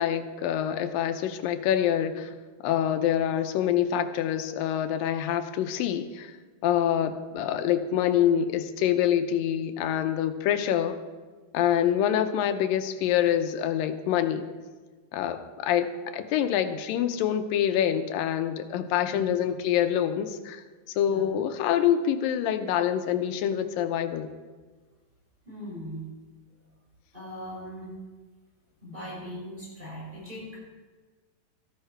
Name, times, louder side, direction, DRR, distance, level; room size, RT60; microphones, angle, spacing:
voice 1, 0.0-2.3 2.6-6.4 6.6-11.0 11.5-14.5 15.1-20.6 21.0-24.3, left 10 dB, 90° left, 9 dB, 2.5 m, -26 dB
voice 2, 19.0-19.5 21.0-21.3 25.5-26.1 27.1-27.9 28.8-30.4, equal, 15° right, -6 dB, 5.4 m, -39 dB
13.5 x 12.5 x 4.6 m, 1.3 s
omnidirectional pair, 3.9 m